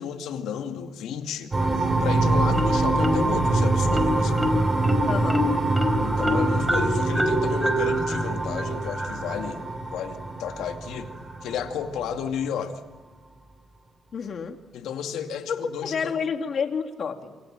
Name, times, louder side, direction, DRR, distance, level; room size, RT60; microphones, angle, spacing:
voice 1, 0.0-4.5 6.0-11.1 11.4-12.7 14.7-16.1, left 8 dB, 85° left, 5 dB, 2.4 m, -33 dB
sound 1, 1.5-12.0, right 2 dB, 25° right, 7.4 m, -25 dB
Marimba xylophone, 2.5-3.5 3.9-9.4, equal, 10° right, 4.4 m, -27 dB
voice 2, 5.1-5.4 14.1-14.6 15.5-17.4, left 6 dB, 50° left, 4 dB, 3.0 m, -29 dB
28.5 x 25.5 x 7.7 m, 1.2 s
cardioid pair, 95°, 0 cm